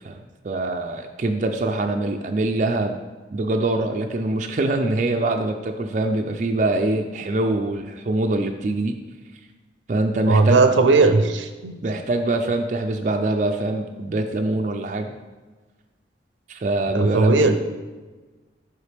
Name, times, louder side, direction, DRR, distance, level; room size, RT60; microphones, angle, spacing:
voice 1, 0.0-3.0 3.3-9.0 9.9-10.6 11.8-15.1 16.5-17.6, right 2 dB, 40° right, 4 dB, 0.4 m, -24 dB
voice 2, 10.3-11.7 16.9-17.6, right 3 dB, 85° right, 8 dB, 0.6 m, -17 dB
8.0 x 4.8 x 3.3 m, 1.3 s
head